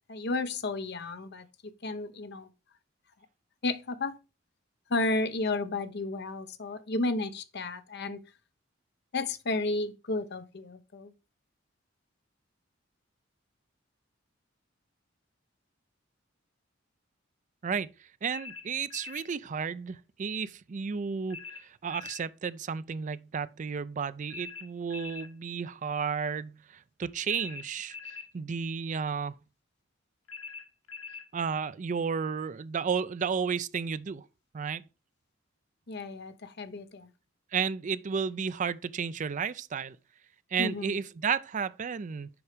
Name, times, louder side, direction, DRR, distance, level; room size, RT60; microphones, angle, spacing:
voice 1, 0.1-1.5 1.8-2.5 3.6-4.2 4.9-8.2 9.1-11.1 35.9-37.1 40.6-41.0, left 2 dB, 55° left, 0.8 m, -32 dB
voice 2, 18.2-28.0 28.3-29.4 31.3-34.3 34.5-34.8 37.5-40.0 40.5-42.3, right 6 dB, 40° right, 0.4 m, -32 dB
sound 1, 18.3-19.3 21.3-22.3 24.3-25.3 27.3-28.3 30.3-31.3, left 5 dB, 90° left, 1.6 m, -43 dB
7.0 x 4.8 x 4.9 m
head